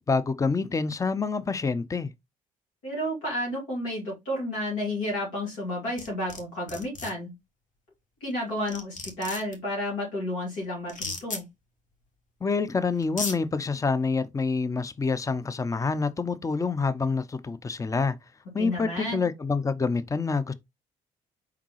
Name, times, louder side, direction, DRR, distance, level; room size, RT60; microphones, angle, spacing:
voice 1, 0.1-2.1 12.4-18.1 18.5-20.5, left 4 dB, 20° left, 0.5 m, -27 dB
voice 2, 2.8-7.3 8.2-11.5 18.6-19.2, left 1 dB, 80° left, 2.5 m, -31 dB
sound 1, 6.0-6.4 6.7-7.1 8.3-8.4 8.7-9.5 10.9-11.4 12.5-12.6 13.0-13.4, left 3 dB, 50° left, 1.3 m, -34 dB
4.7 x 3.5 x 3.1 m
hypercardioid pair, 50°, 17 cm